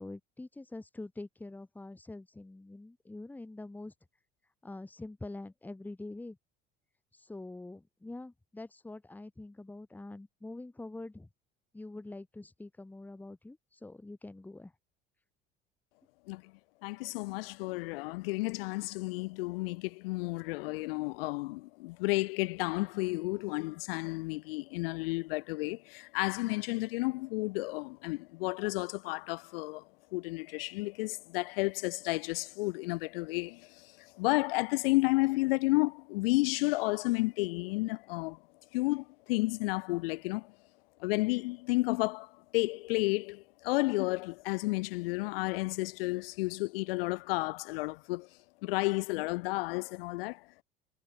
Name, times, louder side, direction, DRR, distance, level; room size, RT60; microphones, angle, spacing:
voice 1, 0.0-3.9 4.6-6.4 7.3-11.3 11.7-14.7, left 2 dB, 5° left, 0.7 m, -45 dB
voice 2, 16.8-29.8 30.1-38.4 38.7-40.5 41.0-48.3 48.6-50.6, left 23 dB, 70° left, 0.6 m, -32 dB
hypercardioid pair, 65°, 30 cm